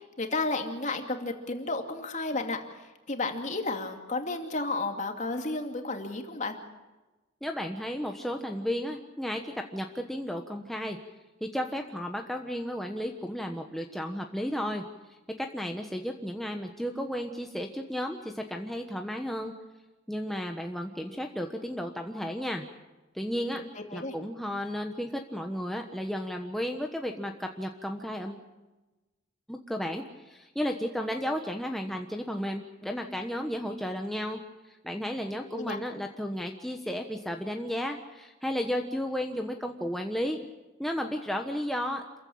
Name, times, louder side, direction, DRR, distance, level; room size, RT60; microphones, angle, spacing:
voice 1, 0.2-2.8 3.1-6.6 23.6-24.1 35.5-35.8, left 2 dB, 40° left, 4 dB, 2.6 m, -32 dB
voice 2, 7.4-11.0 11.4-14.8 15.4-19.5 20.1-22.6 23.1-23.6 23.9-28.5 29.5-34.4 34.7-40.4 40.8-42.2, equal, ahead, 2 dB, 1.2 m, -33 dB
27.5 x 15.0 x 8.7 m, 1.1 s
head